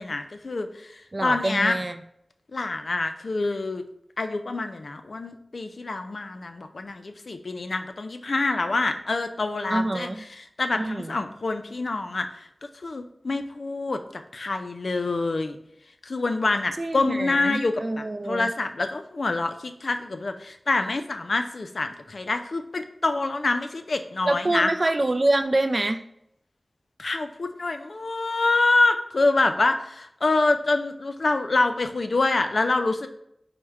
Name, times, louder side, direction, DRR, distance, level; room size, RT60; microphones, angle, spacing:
voice 1, 0.0-1.8 2.5-3.8 4.2-12.5 12.8-15.6 16.0-24.7 27.0-33.1, left 3 dB, 70° left, 7 dB, 0.3 m, -26 dB
voice 2, 1.1-2.0 9.7-10.2 10.8-11.2 16.8-18.5 24.2-26.0, right 2 dB, 45° right, 8 dB, 0.3 m, -26 dB
4.7 x 2.1 x 4.4 m, 0.75 s
wide cardioid pair, 80°, 0 cm